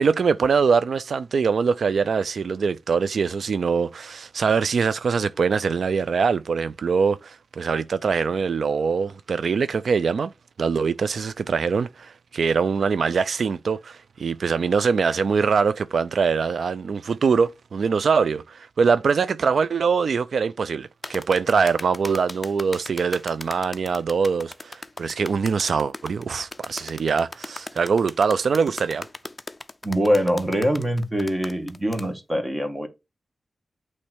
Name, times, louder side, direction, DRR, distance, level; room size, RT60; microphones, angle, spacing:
voice 1, 0.0-10.3 10.6-29.1, right 5 dB, 75° right, 0.3 m, -23 dB
sound 1, 21.0-32.1, left 2 dB, 25° left, 0.5 m, -38 dB
voice 2, 29.8-32.9, equal, 15° right, 1.6 m, -23 dB
8.5 x 3.2 x 6.2 m
wide cardioid pair, 105°, 0 cm